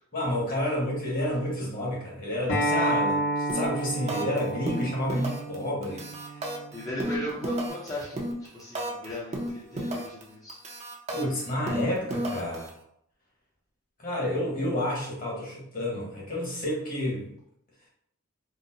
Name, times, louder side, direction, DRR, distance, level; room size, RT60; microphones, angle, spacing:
voice 1, 0.1-6.5 11.1-12.7 14.0-17.3, left 1 dB, 45° left, -3 dB, 1.1 m, -30 dB
Acoustic guitar, 2.5-7.7, right 1 dB, 85° left, 1.1 m, -31 dB
sound 1, 3.5-3.8 4.1-4.4 4.7-5.6 5.8-9.1 9.3-10.2 10.5-12.7, right 1 dB, 30° right, 0.5 m, -32 dB
voice 2, 6.7-8.2 8.5-10.6, left 1 dB, 15° left, -7 dB, 0.5 m, -37 dB
3.8 x 2.0 x 2.6 m, 0.72 s
head